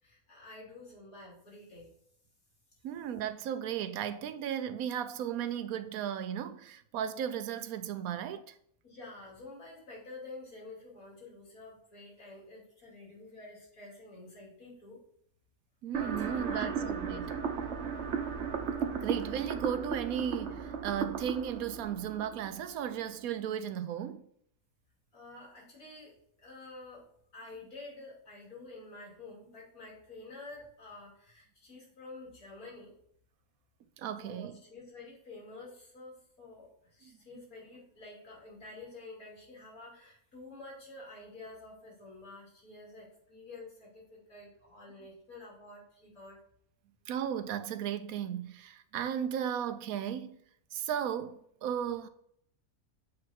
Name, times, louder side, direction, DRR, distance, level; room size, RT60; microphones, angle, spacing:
voice 1, 0.0-1.9 8.8-15.0 16.4-17.5 25.1-26.1 26.4-27.1 27.3-32.9 34.2-46.4, left 2 dB, 75° left, 3.4 m, -49 dB
voice 2, 2.8-8.5 15.8-17.4 19.0-24.3 34.0-34.6 37.0-37.2 47.1-50.4 50.7-52.1, right 9 dB, 80° right, 1.1 m, -35 dB
sound 1, 15.9-23.0, right 6 dB, 55° right, 1.0 m, -35 dB
7.7 x 3.8 x 4.4 m
omnidirectional pair, 1.5 m